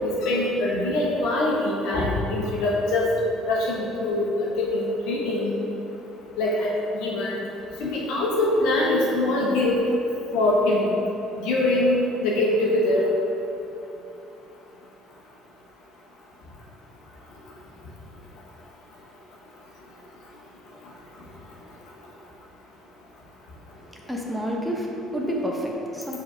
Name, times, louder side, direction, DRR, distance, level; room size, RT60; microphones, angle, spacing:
voice 1, 0.0-3.1 3.4-5.5 6.4-7.4 7.8-9.8 10.3-10.9 11.4-13.1, left 2 dB, 70° left, -4 dB, 1.2 m, -23 dB
voice 2, 23.7-26.2, equal, ahead, -2 dB, 1.1 m, -29 dB
4.7 x 4.2 x 5.6 m, 2.9 s
hypercardioid pair, 55°, 0 cm